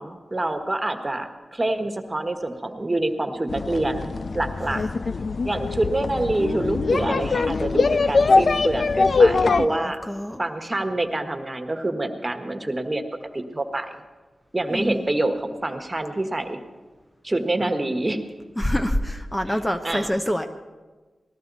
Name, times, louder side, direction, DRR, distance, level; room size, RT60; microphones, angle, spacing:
voice 1, 0.0-4.8 5.4-10.0 10.4-13.0 13.3-14.0 14.5-16.6 17.2-18.2 19.5-19.6 19.8-20.1, right 2 dB, 25° right, 6 dB, 1.5 m, -26 dB
sound 1, 3.5-9.7, left 3 dB, 65° left, 0.4 m, -22 dB
voice 2, 9.7-10.4 14.7-15.1 18.6-20.5, equal, 15° left, 7 dB, 0.8 m, -26 dB
19.5 x 14.0 x 4.1 m, 1.3 s
cardioid pair, 55°, 0 cm